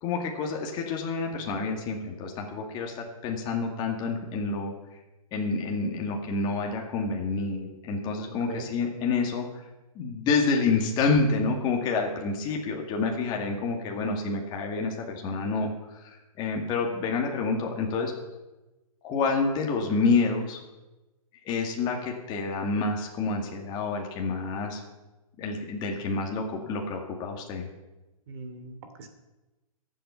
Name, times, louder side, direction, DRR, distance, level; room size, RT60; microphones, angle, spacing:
voice 1, 0.0-4.7 5.3-9.5 10.0-15.7 16.0-18.1 19.0-20.6 21.5-24.8 25.4-27.7, left 4 dB, 25° left, 1 dB, 2.2 m, -28 dB
voice 2, 8.3-8.6 28.3-29.1, right 4 dB, 45° right, 6 dB, 2.7 m, -41 dB
22.5 x 8.1 x 5.9 m, 1.1 s
hypercardioid pair, 150°, 19 cm